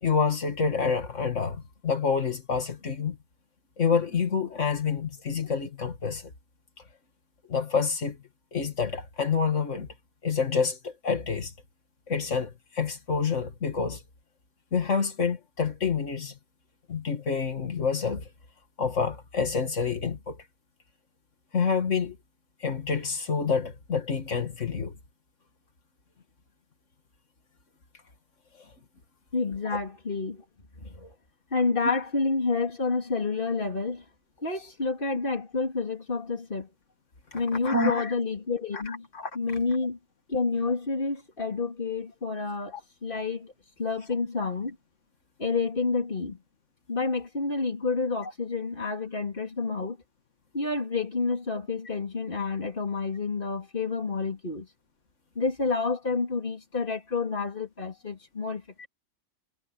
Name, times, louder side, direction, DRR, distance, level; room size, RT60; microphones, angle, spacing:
voice 1, 0.0-3.2 3.8-6.3 7.5-8.2 8.5-9.9 10.2-11.5 12.1-14.0 14.7-16.3 16.9-18.3 18.8-20.4 21.5-22.2 22.6-24.9 29.7-29.8 31.0-31.1 37.3-38.1 38.7-39.3 42.7-42.8, left 5 dB, 85° left, 2.3 m, -28 dB
voice 2, 29.3-30.4 30.8-31.1 31.5-34.0 34.4-36.7 37.3-39.1 39.3-40.0 40.3-42.8 43.0-43.5 43.8-44.8 45.4-46.4 46.9-50.0 50.5-54.7 55.3-58.9, left 4 dB, 45° left, 3.3 m, -29 dB
omnidirectional pair, 1.2 m